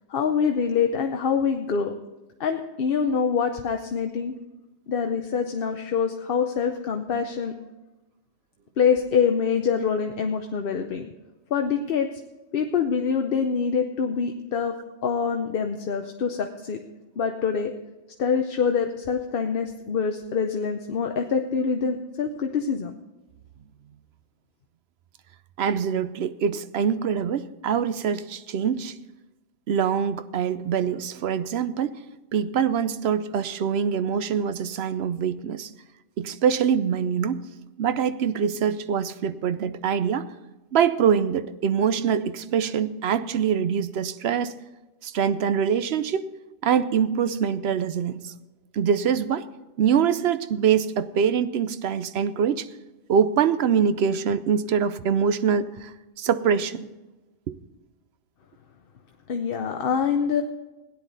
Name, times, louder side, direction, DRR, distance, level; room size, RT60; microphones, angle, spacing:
voice 1, 0.1-1.9 2.4-4.3 4.9-7.5 8.8-11.1 11.5-12.1 12.5-14.8 15.0-16.8 17.2-17.7 18.2-23.0 59.3-60.4, left 6 dB, 55° left, 0.9 m, -25 dB
voice 2, 25.6-28.9 29.7-32.0 32.3-35.7 36.2-37.4 37.8-40.3 40.7-44.6 45.0-46.3 46.6-48.3 48.7-49.5 49.8-52.7 53.1-55.9 56.2-56.9 57.5-57.6, right 7 dB, 70° right, 0.9 m, -24 dB
17.0 x 10.5 x 4.0 m
omnidirectional pair, 1.2 m